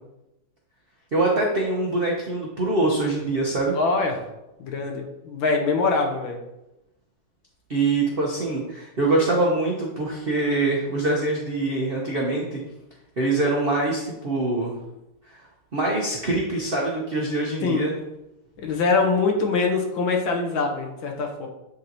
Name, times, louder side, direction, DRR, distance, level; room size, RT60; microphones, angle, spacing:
voice 1, 1.1-3.7 7.7-12.6 13.2-14.7 15.3-15.4 15.7-17.9, right 2 dB, 70° right, -3 dB, 0.5 m, -24 dB
voice 2, 3.7-4.2 4.6-6.4 17.6-17.8 18.6-21.5, left 4 dB, 70° left, 2 dB, 1.6 m, -23 dB
8.6 x 2.9 x 3.9 m, 0.93 s
omnidirectional pair, 2.4 m